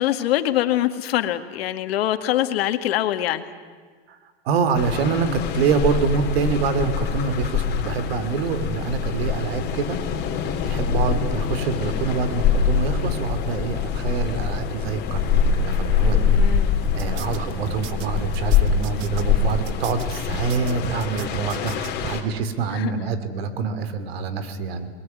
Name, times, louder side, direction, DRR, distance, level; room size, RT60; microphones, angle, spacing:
voice 1, 0.0-3.5 16.3-16.8 22.7-23.0, left 13 dB, 85° left, 9 dB, 2.1 m, -24 dB
voice 2, 4.4-10.0 10.6-16.5 16.9-24.9, right 5 dB, 85° right, 10 dB, 3.2 m, -26 dB
sound 1, 4.8-22.2, left 6 dB, 35° left, 3.6 m, -24 dB
sound 2, 16.8-22.2, right 10 dB, 40° right, 1.3 m, -36 dB
29.5 x 21.0 x 9.6 m, 1.5 s
supercardioid pair, 145°, 30 cm